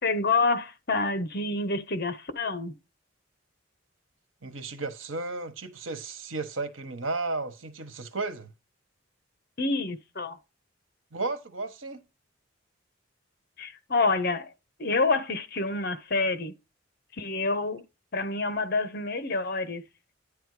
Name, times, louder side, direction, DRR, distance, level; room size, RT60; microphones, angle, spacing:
voice 1, 0.0-2.7 9.6-10.4 13.6-14.5 14.8-16.5 17.2-17.8 18.1-19.8, left 3 dB, 50° left, 1.3 m, -27 dB
voice 2, 4.4-8.5 11.1-12.0, right 3 dB, 85° right, 1.4 m, -34 dB
10.5 x 3.6 x 4.9 m
head